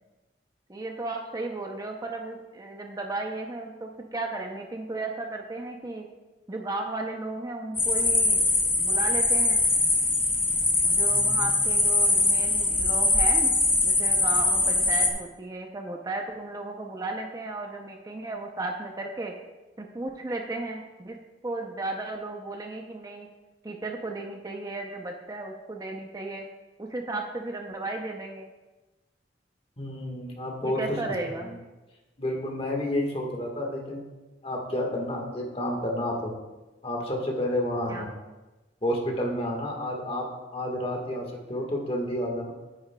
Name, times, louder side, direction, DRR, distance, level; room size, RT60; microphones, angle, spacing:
voice 1, 0.7-6.1 6.5-8.4 8.8-9.6 10.8-13.5 13.8-19.3 19.8-21.2 21.4-23.3 23.6-26.5 26.8-28.5 30.6-31.5 37.9-38.1, right 2 dB, 20° right, 2 dB, 0.5 m, -35 dB
sound 1, 7.8-15.1, left 2 dB, 10° left, 0.8 m, -22 dB
voice 2, 11.1-11.6 29.8-31.0 31.4-31.6 32.2-34.0 34.4-36.3 36.8-38.1 38.8-40.2 40.5-42.5, left 1 dB, 35° left, 0 dB, 1.4 m, -30 dB
9.7 x 9.3 x 2.2 m, 1.1 s
head